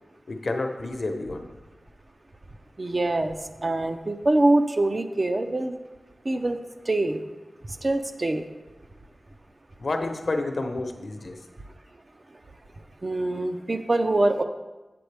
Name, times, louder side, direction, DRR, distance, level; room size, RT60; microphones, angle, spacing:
voice 1, 0.3-1.5 9.8-11.4, left 2 dB, 65° left, 5 dB, 0.9 m, -29 dB
voice 2, 2.8-3.4 3.6-5.7 6.3-6.6 6.9-7.2 7.8-8.4 13.0-14.4, right 2 dB, 40° right, 6 dB, 0.6 m, -24 dB
7.8 x 7.7 x 3.4 m, 1.1 s
wide cardioid pair, 70°, 0 cm